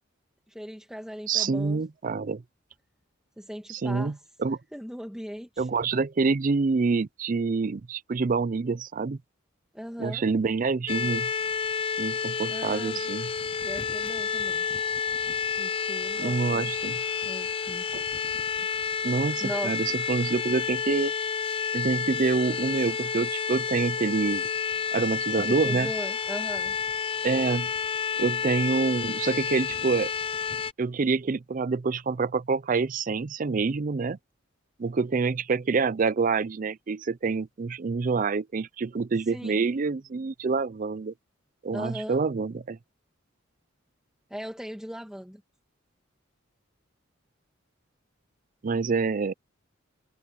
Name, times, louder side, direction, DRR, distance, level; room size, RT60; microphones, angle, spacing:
voice 1, 0.5-1.8 3.4-4.2 4.7-5.7 9.7-10.2 12.5-13.0 13.6-14.7 15.6-16.7 17.2-17.8 19.4-19.8 25.4-26.7 39.3-39.7 41.7-42.2 44.3-45.4, equal, 5° right, 1.6 m, -38 dB
voice 2, 1.3-2.4 3.7-4.1 4.4-4.6 5.6-9.2 10.0-11.3 12.0-13.3 16.2-17.0 17.9-18.0 19.0-21.1 21.7-24.5 24.9-25.9 27.2-27.7 28.2-30.1 30.8-34.2 34.8-41.1 41.6-42.8 48.6-49.3, right 4 dB, 40° right, 0.4 m, -27 dB
sound 1, 10.9-30.7, left 6 dB, 25° left, 0.4 m, -30 dB
head